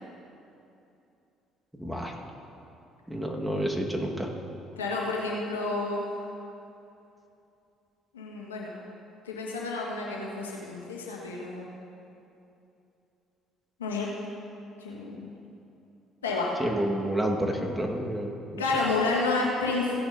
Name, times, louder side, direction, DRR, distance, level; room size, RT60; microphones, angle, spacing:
voice 1, 1.8-2.1 3.1-4.3 16.6-18.6, right 1 dB, 5° right, 1 dB, 1.5 m, -29 dB
voice 2, 4.8-6.1 8.1-8.7 9.2-11.7 13.8-14.1 14.8-15.3 16.2-16.5 18.6-19.9, left 3 dB, 90° left, -3 dB, 1.4 m, -30 dB
16.5 x 10.0 x 2.7 m, 2.8 s
hypercardioid pair, 55°, 0 cm